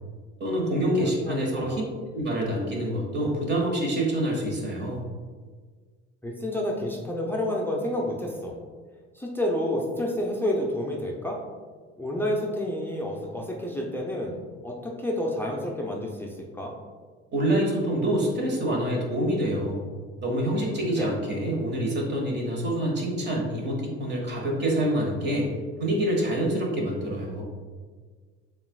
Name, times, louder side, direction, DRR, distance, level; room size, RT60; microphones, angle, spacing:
voice 1, 0.4-1.8 2.1-5.0 17.3-19.8 20.2-25.5 25.8-27.4, right 1 dB, 35° right, -1 dB, 1.4 m, -26 dB
voice 2, 1.0-1.8 6.2-8.5 9.1-11.4 12.0-14.4 14.6-16.7 21.0-21.1, left 1 dB, 5° left, -2 dB, 0.6 m, -29 dB
6.9 x 2.5 x 2.3 m, 1.6 s
hypercardioid pair, 65°, 31 cm